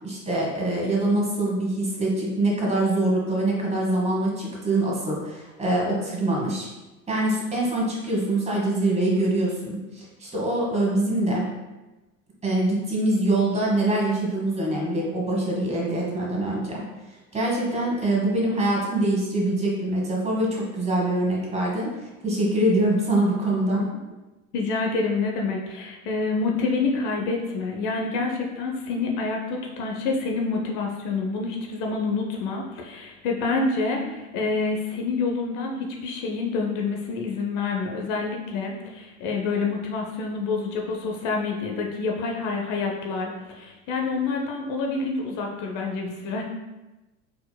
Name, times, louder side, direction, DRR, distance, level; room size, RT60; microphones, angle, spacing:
voice 1, 0.0-6.7 7.1-11.5 12.4-16.8 17.3-23.9, right 1 dB, 15° right, -3 dB, 1.4 m, -24 dB
voice 2, 24.5-46.4, left 4 dB, 55° left, 0 dB, 0.7 m, -27 dB
4.5 x 3.8 x 2.2 m, 1.1 s
hypercardioid pair, 100°, 38 cm